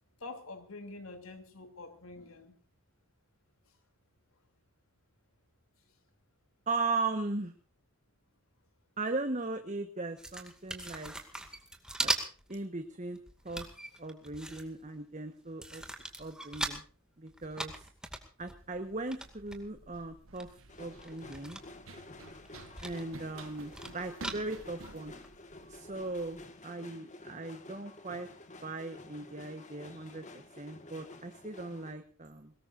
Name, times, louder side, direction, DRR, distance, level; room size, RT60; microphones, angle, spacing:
voice 1, 0.2-2.5 24.8-24.9, left 3 dB, 90° left, 7 dB, 3.2 m, -46 dB
voice 2, 6.7-7.5 9.0-11.1 12.0-12.1 12.5-13.2 13.4-13.7 14.0-15.8 16.2-16.8 17.2-17.9 18.4-21.6 22.8-25.1 25.7-28.3 28.6-32.5, right 3 dB, 35° right, 6 dB, 1.3 m, -38 dB
sound 1, 10.2-12.6 12.8-15.0 15.4-16.9 17.3-19.6 20.1-20.2 20.4-21.9 22.2-23.0 23.3-24.7 25.2-25.3, right 1 dB, 5° right, 2.2 m, -39 dB
Run, 18.5-26.5, right 3 dB, 85° right, 1.3 m, -52 dB
sound 2, 20.7-31.9, left 2 dB, 35° left, 1.7 m, -51 dB
22.5 x 19.5 x 2.6 m, 0.38 s
head